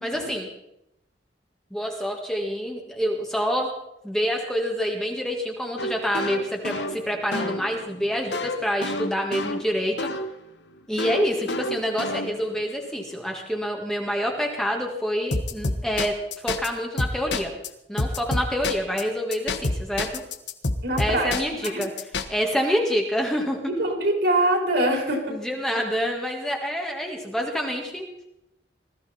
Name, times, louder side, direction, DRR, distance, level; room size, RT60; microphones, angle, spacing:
voice 1, 0.0-0.5 1.7-3.7 4.0-10.1 10.9-17.5 17.9-20.2 21.0-23.6 25.3-28.1, equal, 5° left, 1 dB, 1.9 m, -27 dB
sound 1, 5.8-10.3 11.0-12.6 15.3-16.7 17.0-17.7 18.0-19.0 19.3-22.2, left 2 dB, 70° left, 1.3 m, -29 dB
voice 2, 20.8-21.3 21.6-21.8 23.7-25.4, right 1 dB, 65° right, 1 dB, 4.2 m, -23 dB
20.0 x 14.0 x 4.3 m, 0.82 s
head